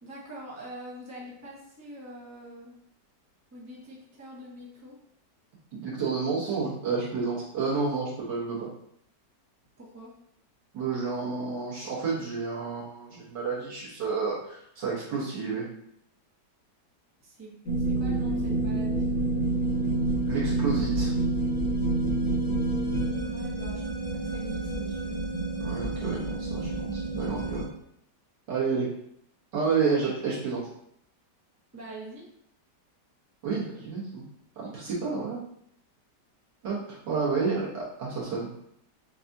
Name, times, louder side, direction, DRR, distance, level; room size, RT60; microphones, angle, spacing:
voice 1, 0.0-2.8 3.5-5.0 9.8-10.1 17.2-19.0 23.2-25.2 31.7-32.3, right 1 dB, 15° right, -5 dB, 0.7 m, -44 dB
voice 2, 5.7-8.7 10.7-15.7 20.3-21.1 25.6-27.7 28.5-28.9 29.5-30.6 33.4-34.3 34.6-35.4 36.6-38.5, right 4 dB, 85° right, -6 dB, 2.0 m, -30 dB
sound 1, 17.7-27.6, right 2 dB, 70° left, 1.6 m, -28 dB
5.8 x 2.4 x 2.7 m, 0.71 s
omnidirectional pair, 1.9 m